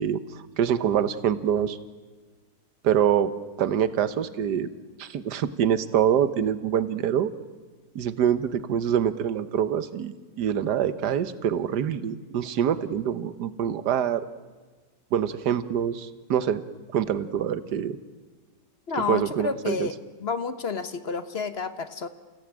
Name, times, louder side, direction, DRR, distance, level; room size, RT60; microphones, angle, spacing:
voice 1, 0.0-1.8 2.8-3.3 3.6-4.7 5.0-7.3 7.9-14.2 15.1-16.6 16.9-18.0 19.1-19.9, right 9 dB, 70° right, 13 dB, 1.6 m, -25 dB
voice 2, 18.9-22.1, left 5 dB, 45° left, 11 dB, 1.0 m, -30 dB
29.0 x 16.5 x 8.9 m, 1.4 s
omnidirectional pair, 1.9 m